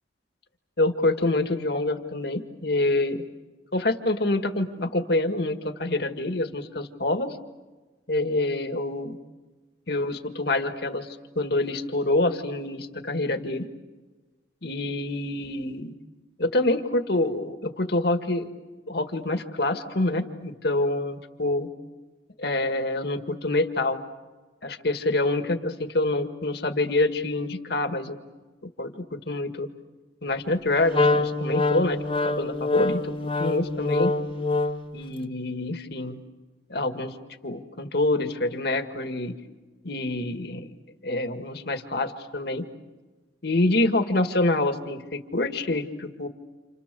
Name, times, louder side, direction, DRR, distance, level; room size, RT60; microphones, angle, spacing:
voice 1, 0.8-3.2 3.7-7.4 8.1-9.2 9.9-11.1 11.4-13.7 14.6-15.9 16.4-18.5 18.9-21.7 22.4-24.0 24.6-28.2 28.8-29.7 30.2-32.0 32.2-34.1 34.9-36.2 36.7-37.1 37.4-39.4 39.8-40.7 41.0-42.7 43.4-46.3, left 2 dB, 60° left, 7 dB, 1.8 m, -26 dB
Wind instrument woodwind instrument, 30.9-35.0, left 2 dB, 30° left, 0.9 m, -25 dB
29.5 x 28.5 x 6.8 m, 1.3 s
head